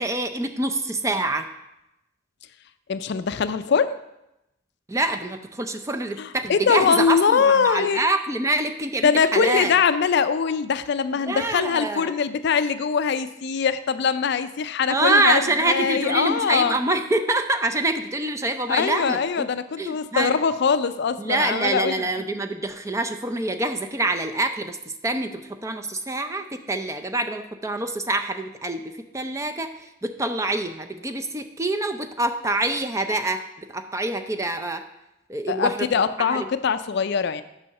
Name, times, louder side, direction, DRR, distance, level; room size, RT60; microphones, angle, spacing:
voice 1, 0.0-1.4 4.9-9.7 11.2-12.2 14.9-19.5 19.8-20.3 21.2-24.8 25.0-34.8 35.3-35.9 36.3-36.5, right 2 dB, 15° right, 7 dB, 0.5 m, -26 dB
voice 2, 2.9-4.0 6.2-8.0 9.0-16.8 18.7-22.0 35.5-37.4, left 6 dB, 55° left, 12 dB, 0.4 m, -22 dB
6.9 x 5.6 x 6.4 m, 0.89 s
head